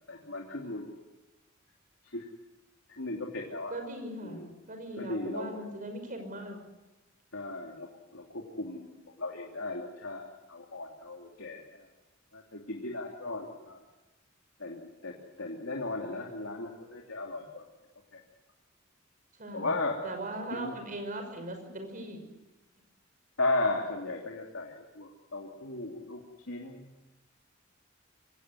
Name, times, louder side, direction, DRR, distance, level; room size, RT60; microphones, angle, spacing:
voice 1, 0.1-0.9 2.1-2.3 3.0-3.7 4.2-4.5 5.0-5.6 7.3-11.9 12.3-13.8 14.6-17.6 18.1-18.2 19.5-20.0 20.5-20.7 23.4-26.2 26.5-26.9, left 2 dB, 85° left, -1 dB, 3.0 m, -36 dB
voice 2, 3.7-6.6 19.4-22.2, right 1 dB, 45° right, 6 dB, 5.8 m, -39 dB
25.5 x 17.5 x 9.5 m, 1.1 s
head